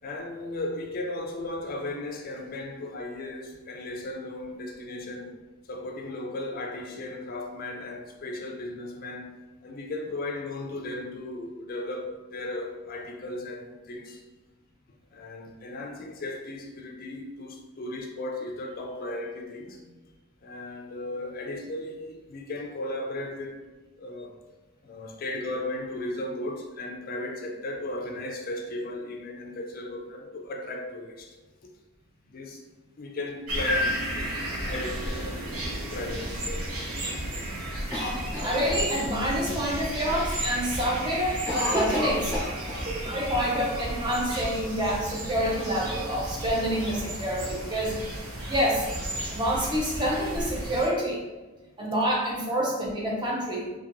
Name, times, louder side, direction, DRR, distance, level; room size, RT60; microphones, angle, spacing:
voice 1, 0.0-5.4 5.6-14.2 15.1-19.8 20.4-23.6 24.0-24.3 24.8-31.4 31.6-31.7 32.3-32.6 33.0-35.5 35.9-36.7 37.1-37.2 39.5-39.6 40.0-40.3, left 2 dB, 40° left, 2 dB, 0.3 m, -36 dB
sound 1, 33.5-50.9, right 1 dB, 90° right, 0.8 m, -33 dB
Cough, 37.9-39.4 39.8-39.9 40.2-40.6 40.9-43.2 43.4-43.5 44.3-45.1, left 1 dB, 10° left, 0.8 m, -32 dB
voice 2, 38.4-42.4 42.9-48.0 48.5-48.9 49.3-51.2 51.8-53.7, equal, 20° right, -2 dB, 0.5 m, -27 dB
2.7 x 2.5 x 2.6 m, 1.2 s
head